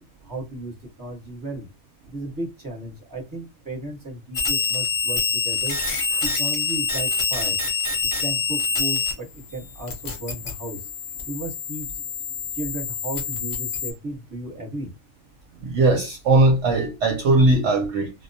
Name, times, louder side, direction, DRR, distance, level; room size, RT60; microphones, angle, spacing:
voice 1, 0.2-1.7 2.0-5.8 6.2-7.6 8.0-10.9 11.2-12.1 12.5-14.9, right 2 dB, 15° right, 0.8 m, -34 dB
sound 1, 4.3-9.1 9.4-13.9, left 4 dB, 45° left, 0.8 m, -26 dB
voice 2, 15.6-18.1, right 2 dB, 70° right, 0.8 m, -19 dB
2.2 x 2.2 x 2.6 m
omnidirectional pair, 1.4 m